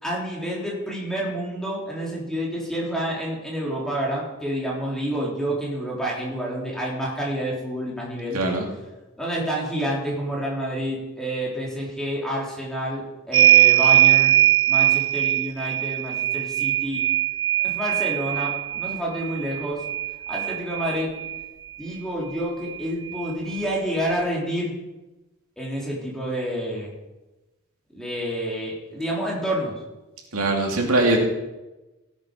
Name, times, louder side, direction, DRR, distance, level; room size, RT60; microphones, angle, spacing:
voice 1, 0.0-8.4 9.2-14.3 14.7-17.0 17.6-19.8 20.3-21.1 21.8-24.7 25.6-26.9 27.9-29.7, equal, ahead, -4 dB, 3.1 m, -28 dB
voice 2, 8.3-8.7 30.3-31.2, right 2 dB, 90° right, 0 dB, 2.7 m, -21 dB
sound 1, 13.3-21.4 22.7-22.8 23.1-24.2, right 13 dB, 60° right, 0.9 m, -21 dB
16.5 x 8.1 x 5.2 m, 1.1 s
head